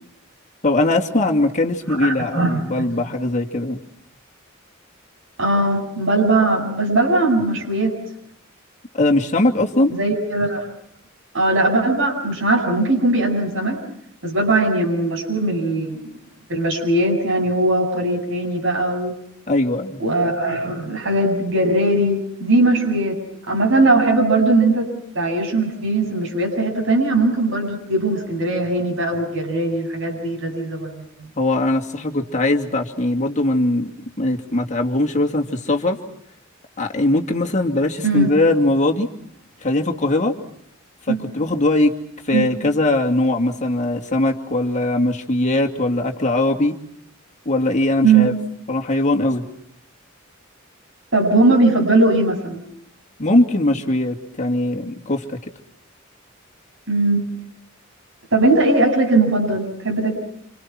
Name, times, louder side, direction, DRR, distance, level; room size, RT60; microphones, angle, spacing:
voice 1, 0.6-3.8 8.9-9.9 19.5-20.0 31.4-33.9 34.2-36.0 36.8-39.1 39.6-40.3 41.1-41.9 42.2-46.8 47.5-48.3 48.7-49.4 53.2-55.4, left 2 dB, 35° left, 2 dB, 2.6 m, -20 dB
voice 2, 2.0-2.6 5.4-7.9 9.9-10.7 11.3-13.8 14.2-16.0 16.5-19.1 20.0-23.2 23.5-24.9 25.1-31.0 38.0-38.3 41.1-41.2 42.3-42.5 48.0-48.3 51.1-52.6 56.9-57.3 58.3-60.1, right 2 dB, 70° right, 2 dB, 8.0 m, -19 dB
28.0 x 27.5 x 6.1 m, 0.69 s
head